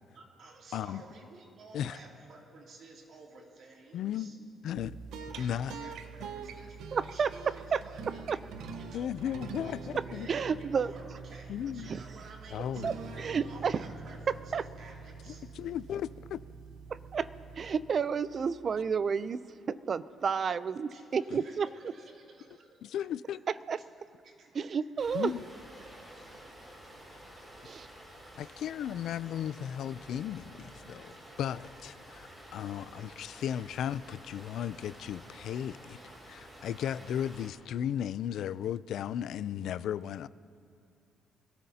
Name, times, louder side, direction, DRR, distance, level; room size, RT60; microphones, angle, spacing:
voice 1, 0.1-4.4 5.2-8.3 8.7-15.4 20.9-22.8 23.3-23.4 24.2-24.5 25.8-25.9 26.3-26.4 28.4-28.6, right 3 dB, 50° right, 2.6 m, -53 dB
voice 2, 3.9-4.3 4.6-5.0 5.4-5.7 8.9-9.8 10.1-10.3 11.5-11.9 12.5-12.9 15.6-16.4 21.3-21.4 22.8-23.4 25.1-25.4 28.4-31.1 31.4-36.0 36.3-40.3, left 10 dB, 65° left, 0.3 m, -35 dB
sound 1, 4.7-18.3, right 5 dB, 75° right, 0.9 m, -45 dB
voice 3, 6.9-7.3 7.7-7.8 8.3-8.4 10.3-10.9 11.9-12.0 12.8-12.9 13.2-13.7 14.5-14.6 16.9-17.3 17.6-19.4 19.7-21.7 23.7-23.8 24.6-25.3 27.7-27.9, right 6 dB, 35° right, 0.4 m, -30 dB
sound 2, 25.0-37.5, equal, 15° right, 3.8 m, -51 dB
26.0 x 17.5 x 2.8 m
cardioid pair, 150°, 0 cm